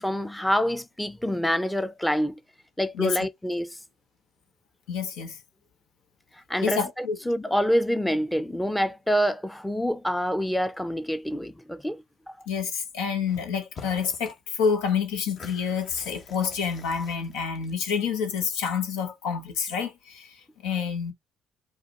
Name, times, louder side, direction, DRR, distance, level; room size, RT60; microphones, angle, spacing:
voice 1, 0.0-2.4 2.8-3.8 6.3-12.4, equal, 5° left, 0.6 m, -27 dB
voice 2, 4.9-5.4 6.6-7.2 12.5-21.1, left 6 dB, 80° left, 1.0 m, -28 dB
sound 1, 13.3-13.5 13.7-14.4 14.7-18.1, left 4 dB, 50° left, 1.2 m, -46 dB
4.9 x 2.4 x 3.7 m
supercardioid pair, 60°, 0 cm